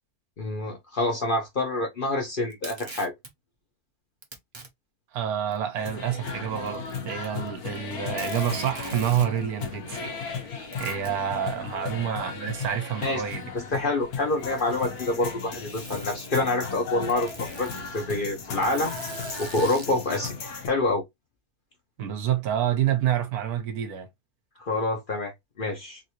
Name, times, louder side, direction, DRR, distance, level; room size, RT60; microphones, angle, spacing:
voice 1, 0.4-3.1 11.7-11.9 13.0-13.2 13.7-18.9 19.4-20.3 20.6-21.0 24.6-26.0, left 2 dB, 45° left, 0.7 m, -27 dB
Packing tape duct tape, 2.5-3.3 4.2-4.7 5.5-5.6 6.6-7.5 7.7-7.8 8.2-9.3 10.7-11.2 12.4-12.5 13.4-13.5 14.3-14.9 15.7-16.4 17.1-17.8 18.6-19.9, right 3 dB, 40° right, 0.4 m, -42 dB
voice 2, 5.1-10.1 10.8-13.6 22.0-24.1, right 10 dB, 80° right, 1.3 m, -28 dB
sound 1, 5.8-20.7, left 5 dB, 75° left, 1.4 m, -35 dB
3.5 x 2.6 x 2.8 m
omnidirectional pair, 1.6 m